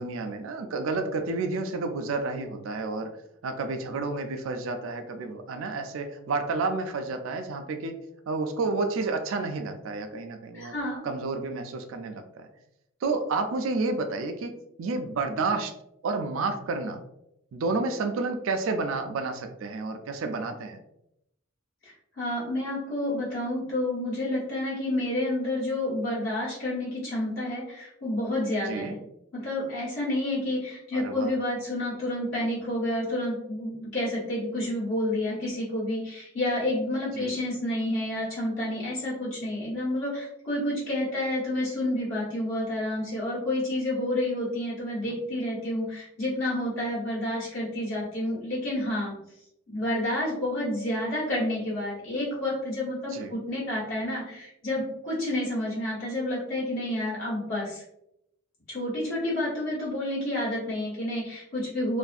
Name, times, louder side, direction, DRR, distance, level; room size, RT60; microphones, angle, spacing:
voice 1, 0.0-3.1 3.4-8.0 8.3-10.7 11.0-12.5 13.0-14.5 14.8-15.7 16.0-17.0 17.5-20.8 28.7-28.9 30.9-31.3 37.1-37.3 53.1-53.3, right 3 dB, 75° right, 6 dB, 0.4 m, -30 dB
voice 2, 10.5-11.0 21.8-28.9 29.3-49.2 49.7-57.8 58.7-62.0, left 1 dB, 70° left, -7 dB, 1.2 m, -29 dB
2.6 x 2.4 x 2.3 m, 0.81 s
head